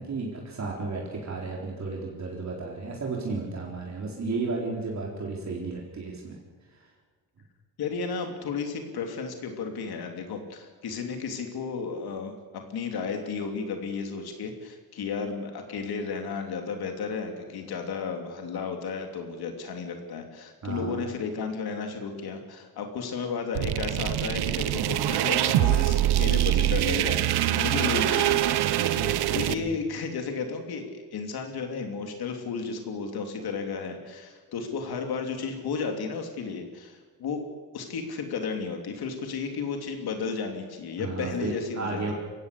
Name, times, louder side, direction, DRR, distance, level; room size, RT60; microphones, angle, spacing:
voice 1, 0.0-6.4 6.7-6.8 20.6-21.1 29.0-29.7 41.0-42.1, right 3 dB, 45° right, -2 dB, 4.2 m, -33 dB
voice 2, 7.8-28.5 28.9-37.4 37.7-42.1, left 5 dB, 75° left, 4 dB, 3.2 m, -33 dB
sound 1, 23.5-29.5, right 13 dB, 90° right, 1.1 m, -24 dB
22.5 x 16.5 x 8.3 m, 1.5 s
cardioid pair, 115°, 37 cm